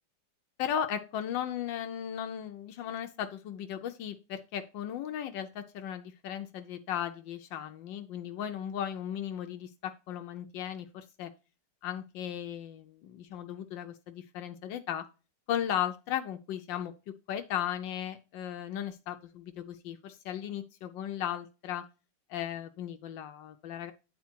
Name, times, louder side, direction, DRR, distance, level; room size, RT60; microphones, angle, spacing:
voice 1, 0.6-11.3 11.8-15.1 15.5-21.9 22.3-23.9, left 10 dB, 80° left, 7 dB, 1.4 m, -36 dB
9.5 x 4.3 x 4.4 m, 0.31 s
omnidirectional pair, 2.0 m